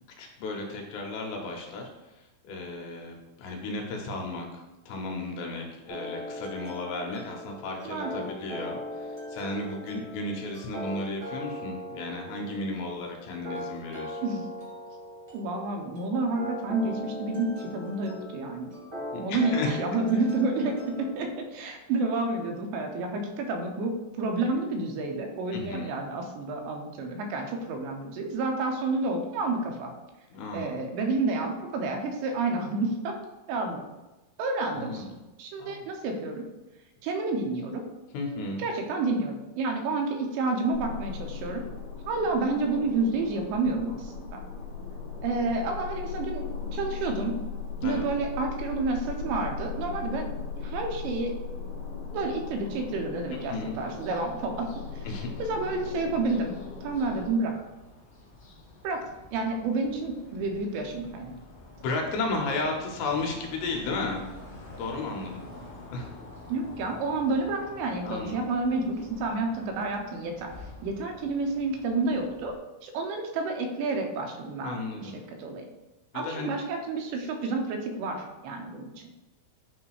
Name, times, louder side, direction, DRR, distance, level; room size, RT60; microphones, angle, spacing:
voice 1, 0.2-14.2 19.1-19.8 25.5-25.9 30.3-30.7 34.7-35.1 35.6-35.9 38.1-38.6 47.8-48.0 53.5-53.8 55.1-55.4 61.8-64.2 64.8-65.4 65.9-66.1 68.0-68.4 74.6-75.2 76.1-76.5, left 2 dB, 75° left, 1 dB, 3.1 m, -34 dB
sound 1, 5.9-21.2, left 1 dB, 30° right, 1.5 m, -39 dB
voice 2, 7.8-8.3 14.2-14.5 15.3-18.7 19.2-29.9 30.5-33.1 33.5-33.8 34.4-35.0 35.4-36.4 37.0-37.8 38.6-41.6 42.1-44.4 45.2-47.4 47.8-50.3 50.6-51.3 52.1-55.1 55.4-56.5 56.8-57.5 58.8-59.0 59.3-61.3 66.5-70.5 70.8-72.5 72.8-74.8 75.0-75.1 75.4-75.7 76.1-78.9, right 3 dB, 80° right, 3 dB, 3.1 m, -29 dB
sound 2, 40.7-57.3, left 5 dB, 60° left, 2.7 m, -38 dB
sound 3, 53.3-72.6, left 2 dB, 40° left, 1.8 m, -49 dB
8.5 x 3.3 x 4.8 m, 1.1 s
omnidirectional pair, 5.2 m